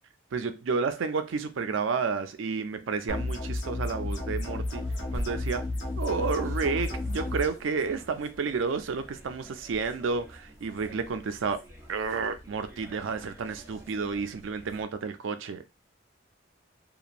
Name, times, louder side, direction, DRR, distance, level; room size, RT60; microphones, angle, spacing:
voice 1, 0.3-5.7 6.0-15.6, right 5 dB, 90° right, 0.4 m, -31 dB
sound 1, 3.1-7.5, left 2 dB, 70° left, 0.7 m, -32 dB
sound 2, 4.4-14.8, equal, 15° right, 0.8 m, -47 dB
2.9 x 2.2 x 2.5 m
head